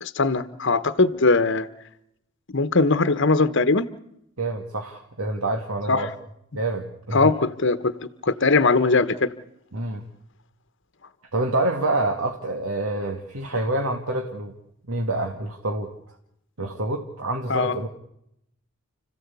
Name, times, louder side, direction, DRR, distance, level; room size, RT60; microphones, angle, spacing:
voice 1, 0.0-1.7 2.5-3.9 5.9-6.1 7.1-7.9 8.2-9.3 17.5-17.8, left 3 dB, 55° left, 13 dB, 1.1 m, -20 dB
voice 2, 4.4-6.1 6.5-7.3 9.7-10.0 11.3-14.5 14.9-15.9 16.6-17.9, right 2 dB, 75° right, 3 dB, 2.1 m, -27 dB
30.0 x 15.5 x 8.4 m, 0.79 s
head